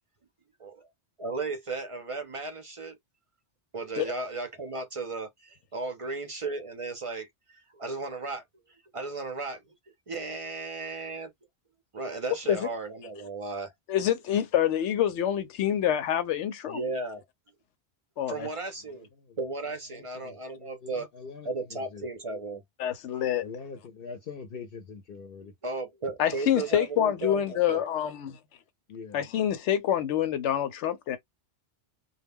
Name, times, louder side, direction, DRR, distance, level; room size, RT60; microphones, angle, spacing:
voice 1, 1.2-3.0 3.7-9.6 10.1-11.3 11.9-13.7 16.7-17.2 18.3-19.1 19.4-21.1 21.4-22.6 25.4-27.8, right 3 dB, 50° right, 0.4 m, -35 dB
voice 2, 13.9-16.8 18.2-18.5 22.8-23.4 26.2-28.4 29.1-31.2, left 10 dB, 90° left, 0.9 m, -26 dB
voice 3, 19.9-21.5 21.9-22.1 23.4-25.5 28.9-29.2, left 5 dB, 60° left, 0.7 m, -43 dB
2.2 x 2.1 x 3.5 m
omnidirectional pair, 1.2 m